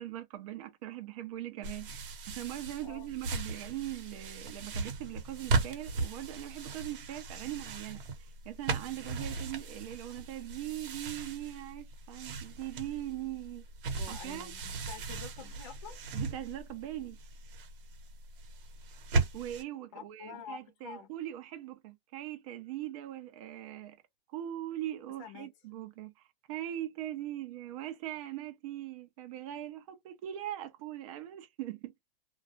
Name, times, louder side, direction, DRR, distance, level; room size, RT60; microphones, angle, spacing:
voice 1, 0.0-8.0 8.4-13.6 14.1-14.5 16.1-17.2 19.1-24.0 24.3-26.1 26.5-31.9, right 13 dB, 35° right, 0.5 m, -41 dB
sound 1, 1.6-19.6, right 3 dB, 65° right, 0.9 m, -37 dB
voice 2, 14.0-16.0 19.9-21.1 25.2-25.5, left 8 dB, 35° left, 0.4 m, -47 dB
2.3 x 2.0 x 2.6 m
hypercardioid pair, 155°, 29 cm